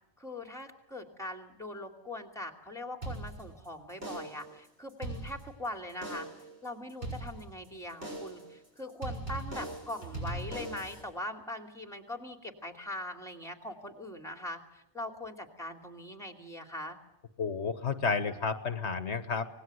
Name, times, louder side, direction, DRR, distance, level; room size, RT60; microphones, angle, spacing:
voice 1, 0.2-6.3 6.6-17.0, left 1 dB, 5° left, 4 dB, 2.7 m, -41 dB
sound 1, 3.0-3.7 4.0-4.5 4.9-5.7 6.0-6.5 7.0-7.7 8.0-8.5 9.0-11.0, right 2 dB, 55° right, 7.2 m, -40 dB
voice 2, 17.4-19.5, left 5 dB, 70° left, 10 dB, 1.5 m, -31 dB
26.0 x 20.0 x 7.9 m, 0.86 s
omnidirectional pair, 1.2 m